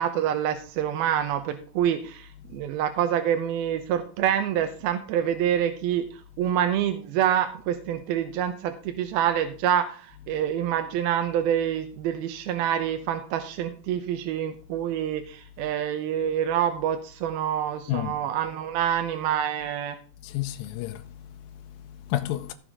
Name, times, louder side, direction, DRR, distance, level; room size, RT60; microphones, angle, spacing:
voice 1, 0.0-20.0, right 10 dB, 80° right, 2.7 m, -26 dB
voice 2, 17.9-18.2 20.2-22.5, left 14 dB, 80° left, 2.4 m, -32 dB
15.5 x 7.0 x 3.6 m
omnidirectional pair, 4.4 m